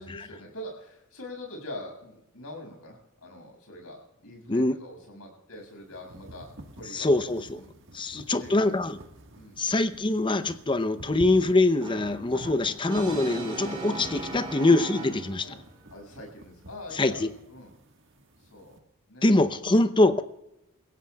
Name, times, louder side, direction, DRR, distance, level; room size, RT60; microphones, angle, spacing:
voice 1, 0.0-6.5 6.7-7.1 7.6-7.7 8.3-8.8 9.3-9.6 15.4-15.6 15.9-17.7 18.4-18.8 19.1-19.3, left 1 dB, 90° left, 6.7 m, -43 dB
sound 1, 5.5-18.8, right 1 dB, 60° right, 1.6 m, -49 dB
voice 2, 6.9-7.6 7.9-9.0 9.6-15.6 16.9-17.3 19.2-20.2, left 2 dB, 20° left, 0.7 m, -24 dB
Brass instrument, 11.8-15.6, right 2 dB, 25° right, 3.1 m, -38 dB
27.0 x 16.0 x 2.3 m
head